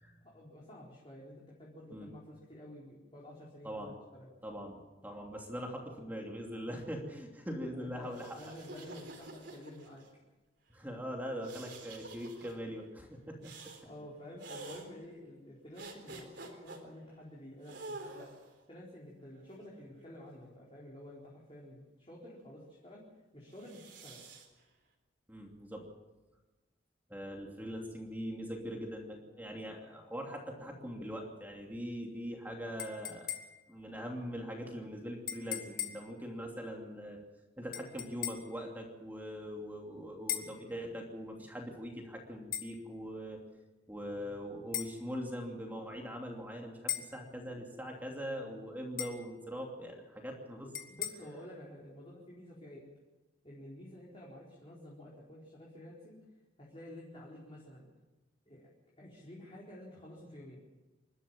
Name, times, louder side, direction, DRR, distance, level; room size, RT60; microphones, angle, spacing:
voice 1, 0.2-4.3 7.8-10.0 13.8-18.3 18.7-23.0 23.3-24.2 50.9-52.9 53.4-56.2 56.6-57.9 58.5-58.7 59.0-60.6, left 1 dB, 30° left, -5 dB, 4.3 m, -50 dB
voice 2, 4.4-8.5 10.7-13.5 25.3-25.8 27.1-33.3 33.7-37.2 37.6-43.4 43.9-50.7, equal, 10° right, 0 dB, 2.8 m, -42 dB
sound 1, 8.0-10.1 11.4-12.5 13.4-13.8 14.4-14.9 15.8-16.8 17.6-18.5 19.3-20.5 23.5-24.5, right 2 dB, 60° right, 3.9 m, -48 dB
sound 2, 32.8-33.7 35.3-36.1 37.7-38.6 40.3-40.6 42.5-42.7 44.7-45.0 46.9-47.2 49.0-49.3 50.7-51.1, left 10 dB, 45° left, 1.8 m, -39 dB
28.0 x 12.5 x 7.5 m, 1.1 s
head